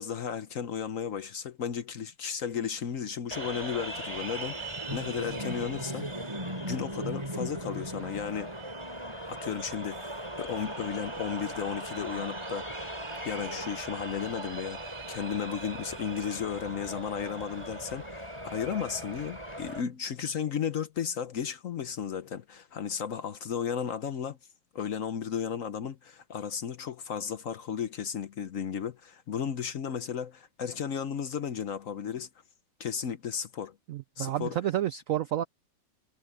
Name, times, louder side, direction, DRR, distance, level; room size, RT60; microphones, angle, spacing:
voice 1, 0.0-6.3 6.6-8.5 9.3-12.9 13.2-24.4 24.7-32.3 32.8-33.8 34.2-34.6, left 7 dB, 55° left, 1.0 m, -34 dB
sound 1, 3.3-19.8, right 1 dB, 15° right, 5.1 m, -38 dB
voice 2, 33.9-35.4, right 12 dB, 85° right, 0.7 m, -30 dB
omnidirectional pair, 2.0 m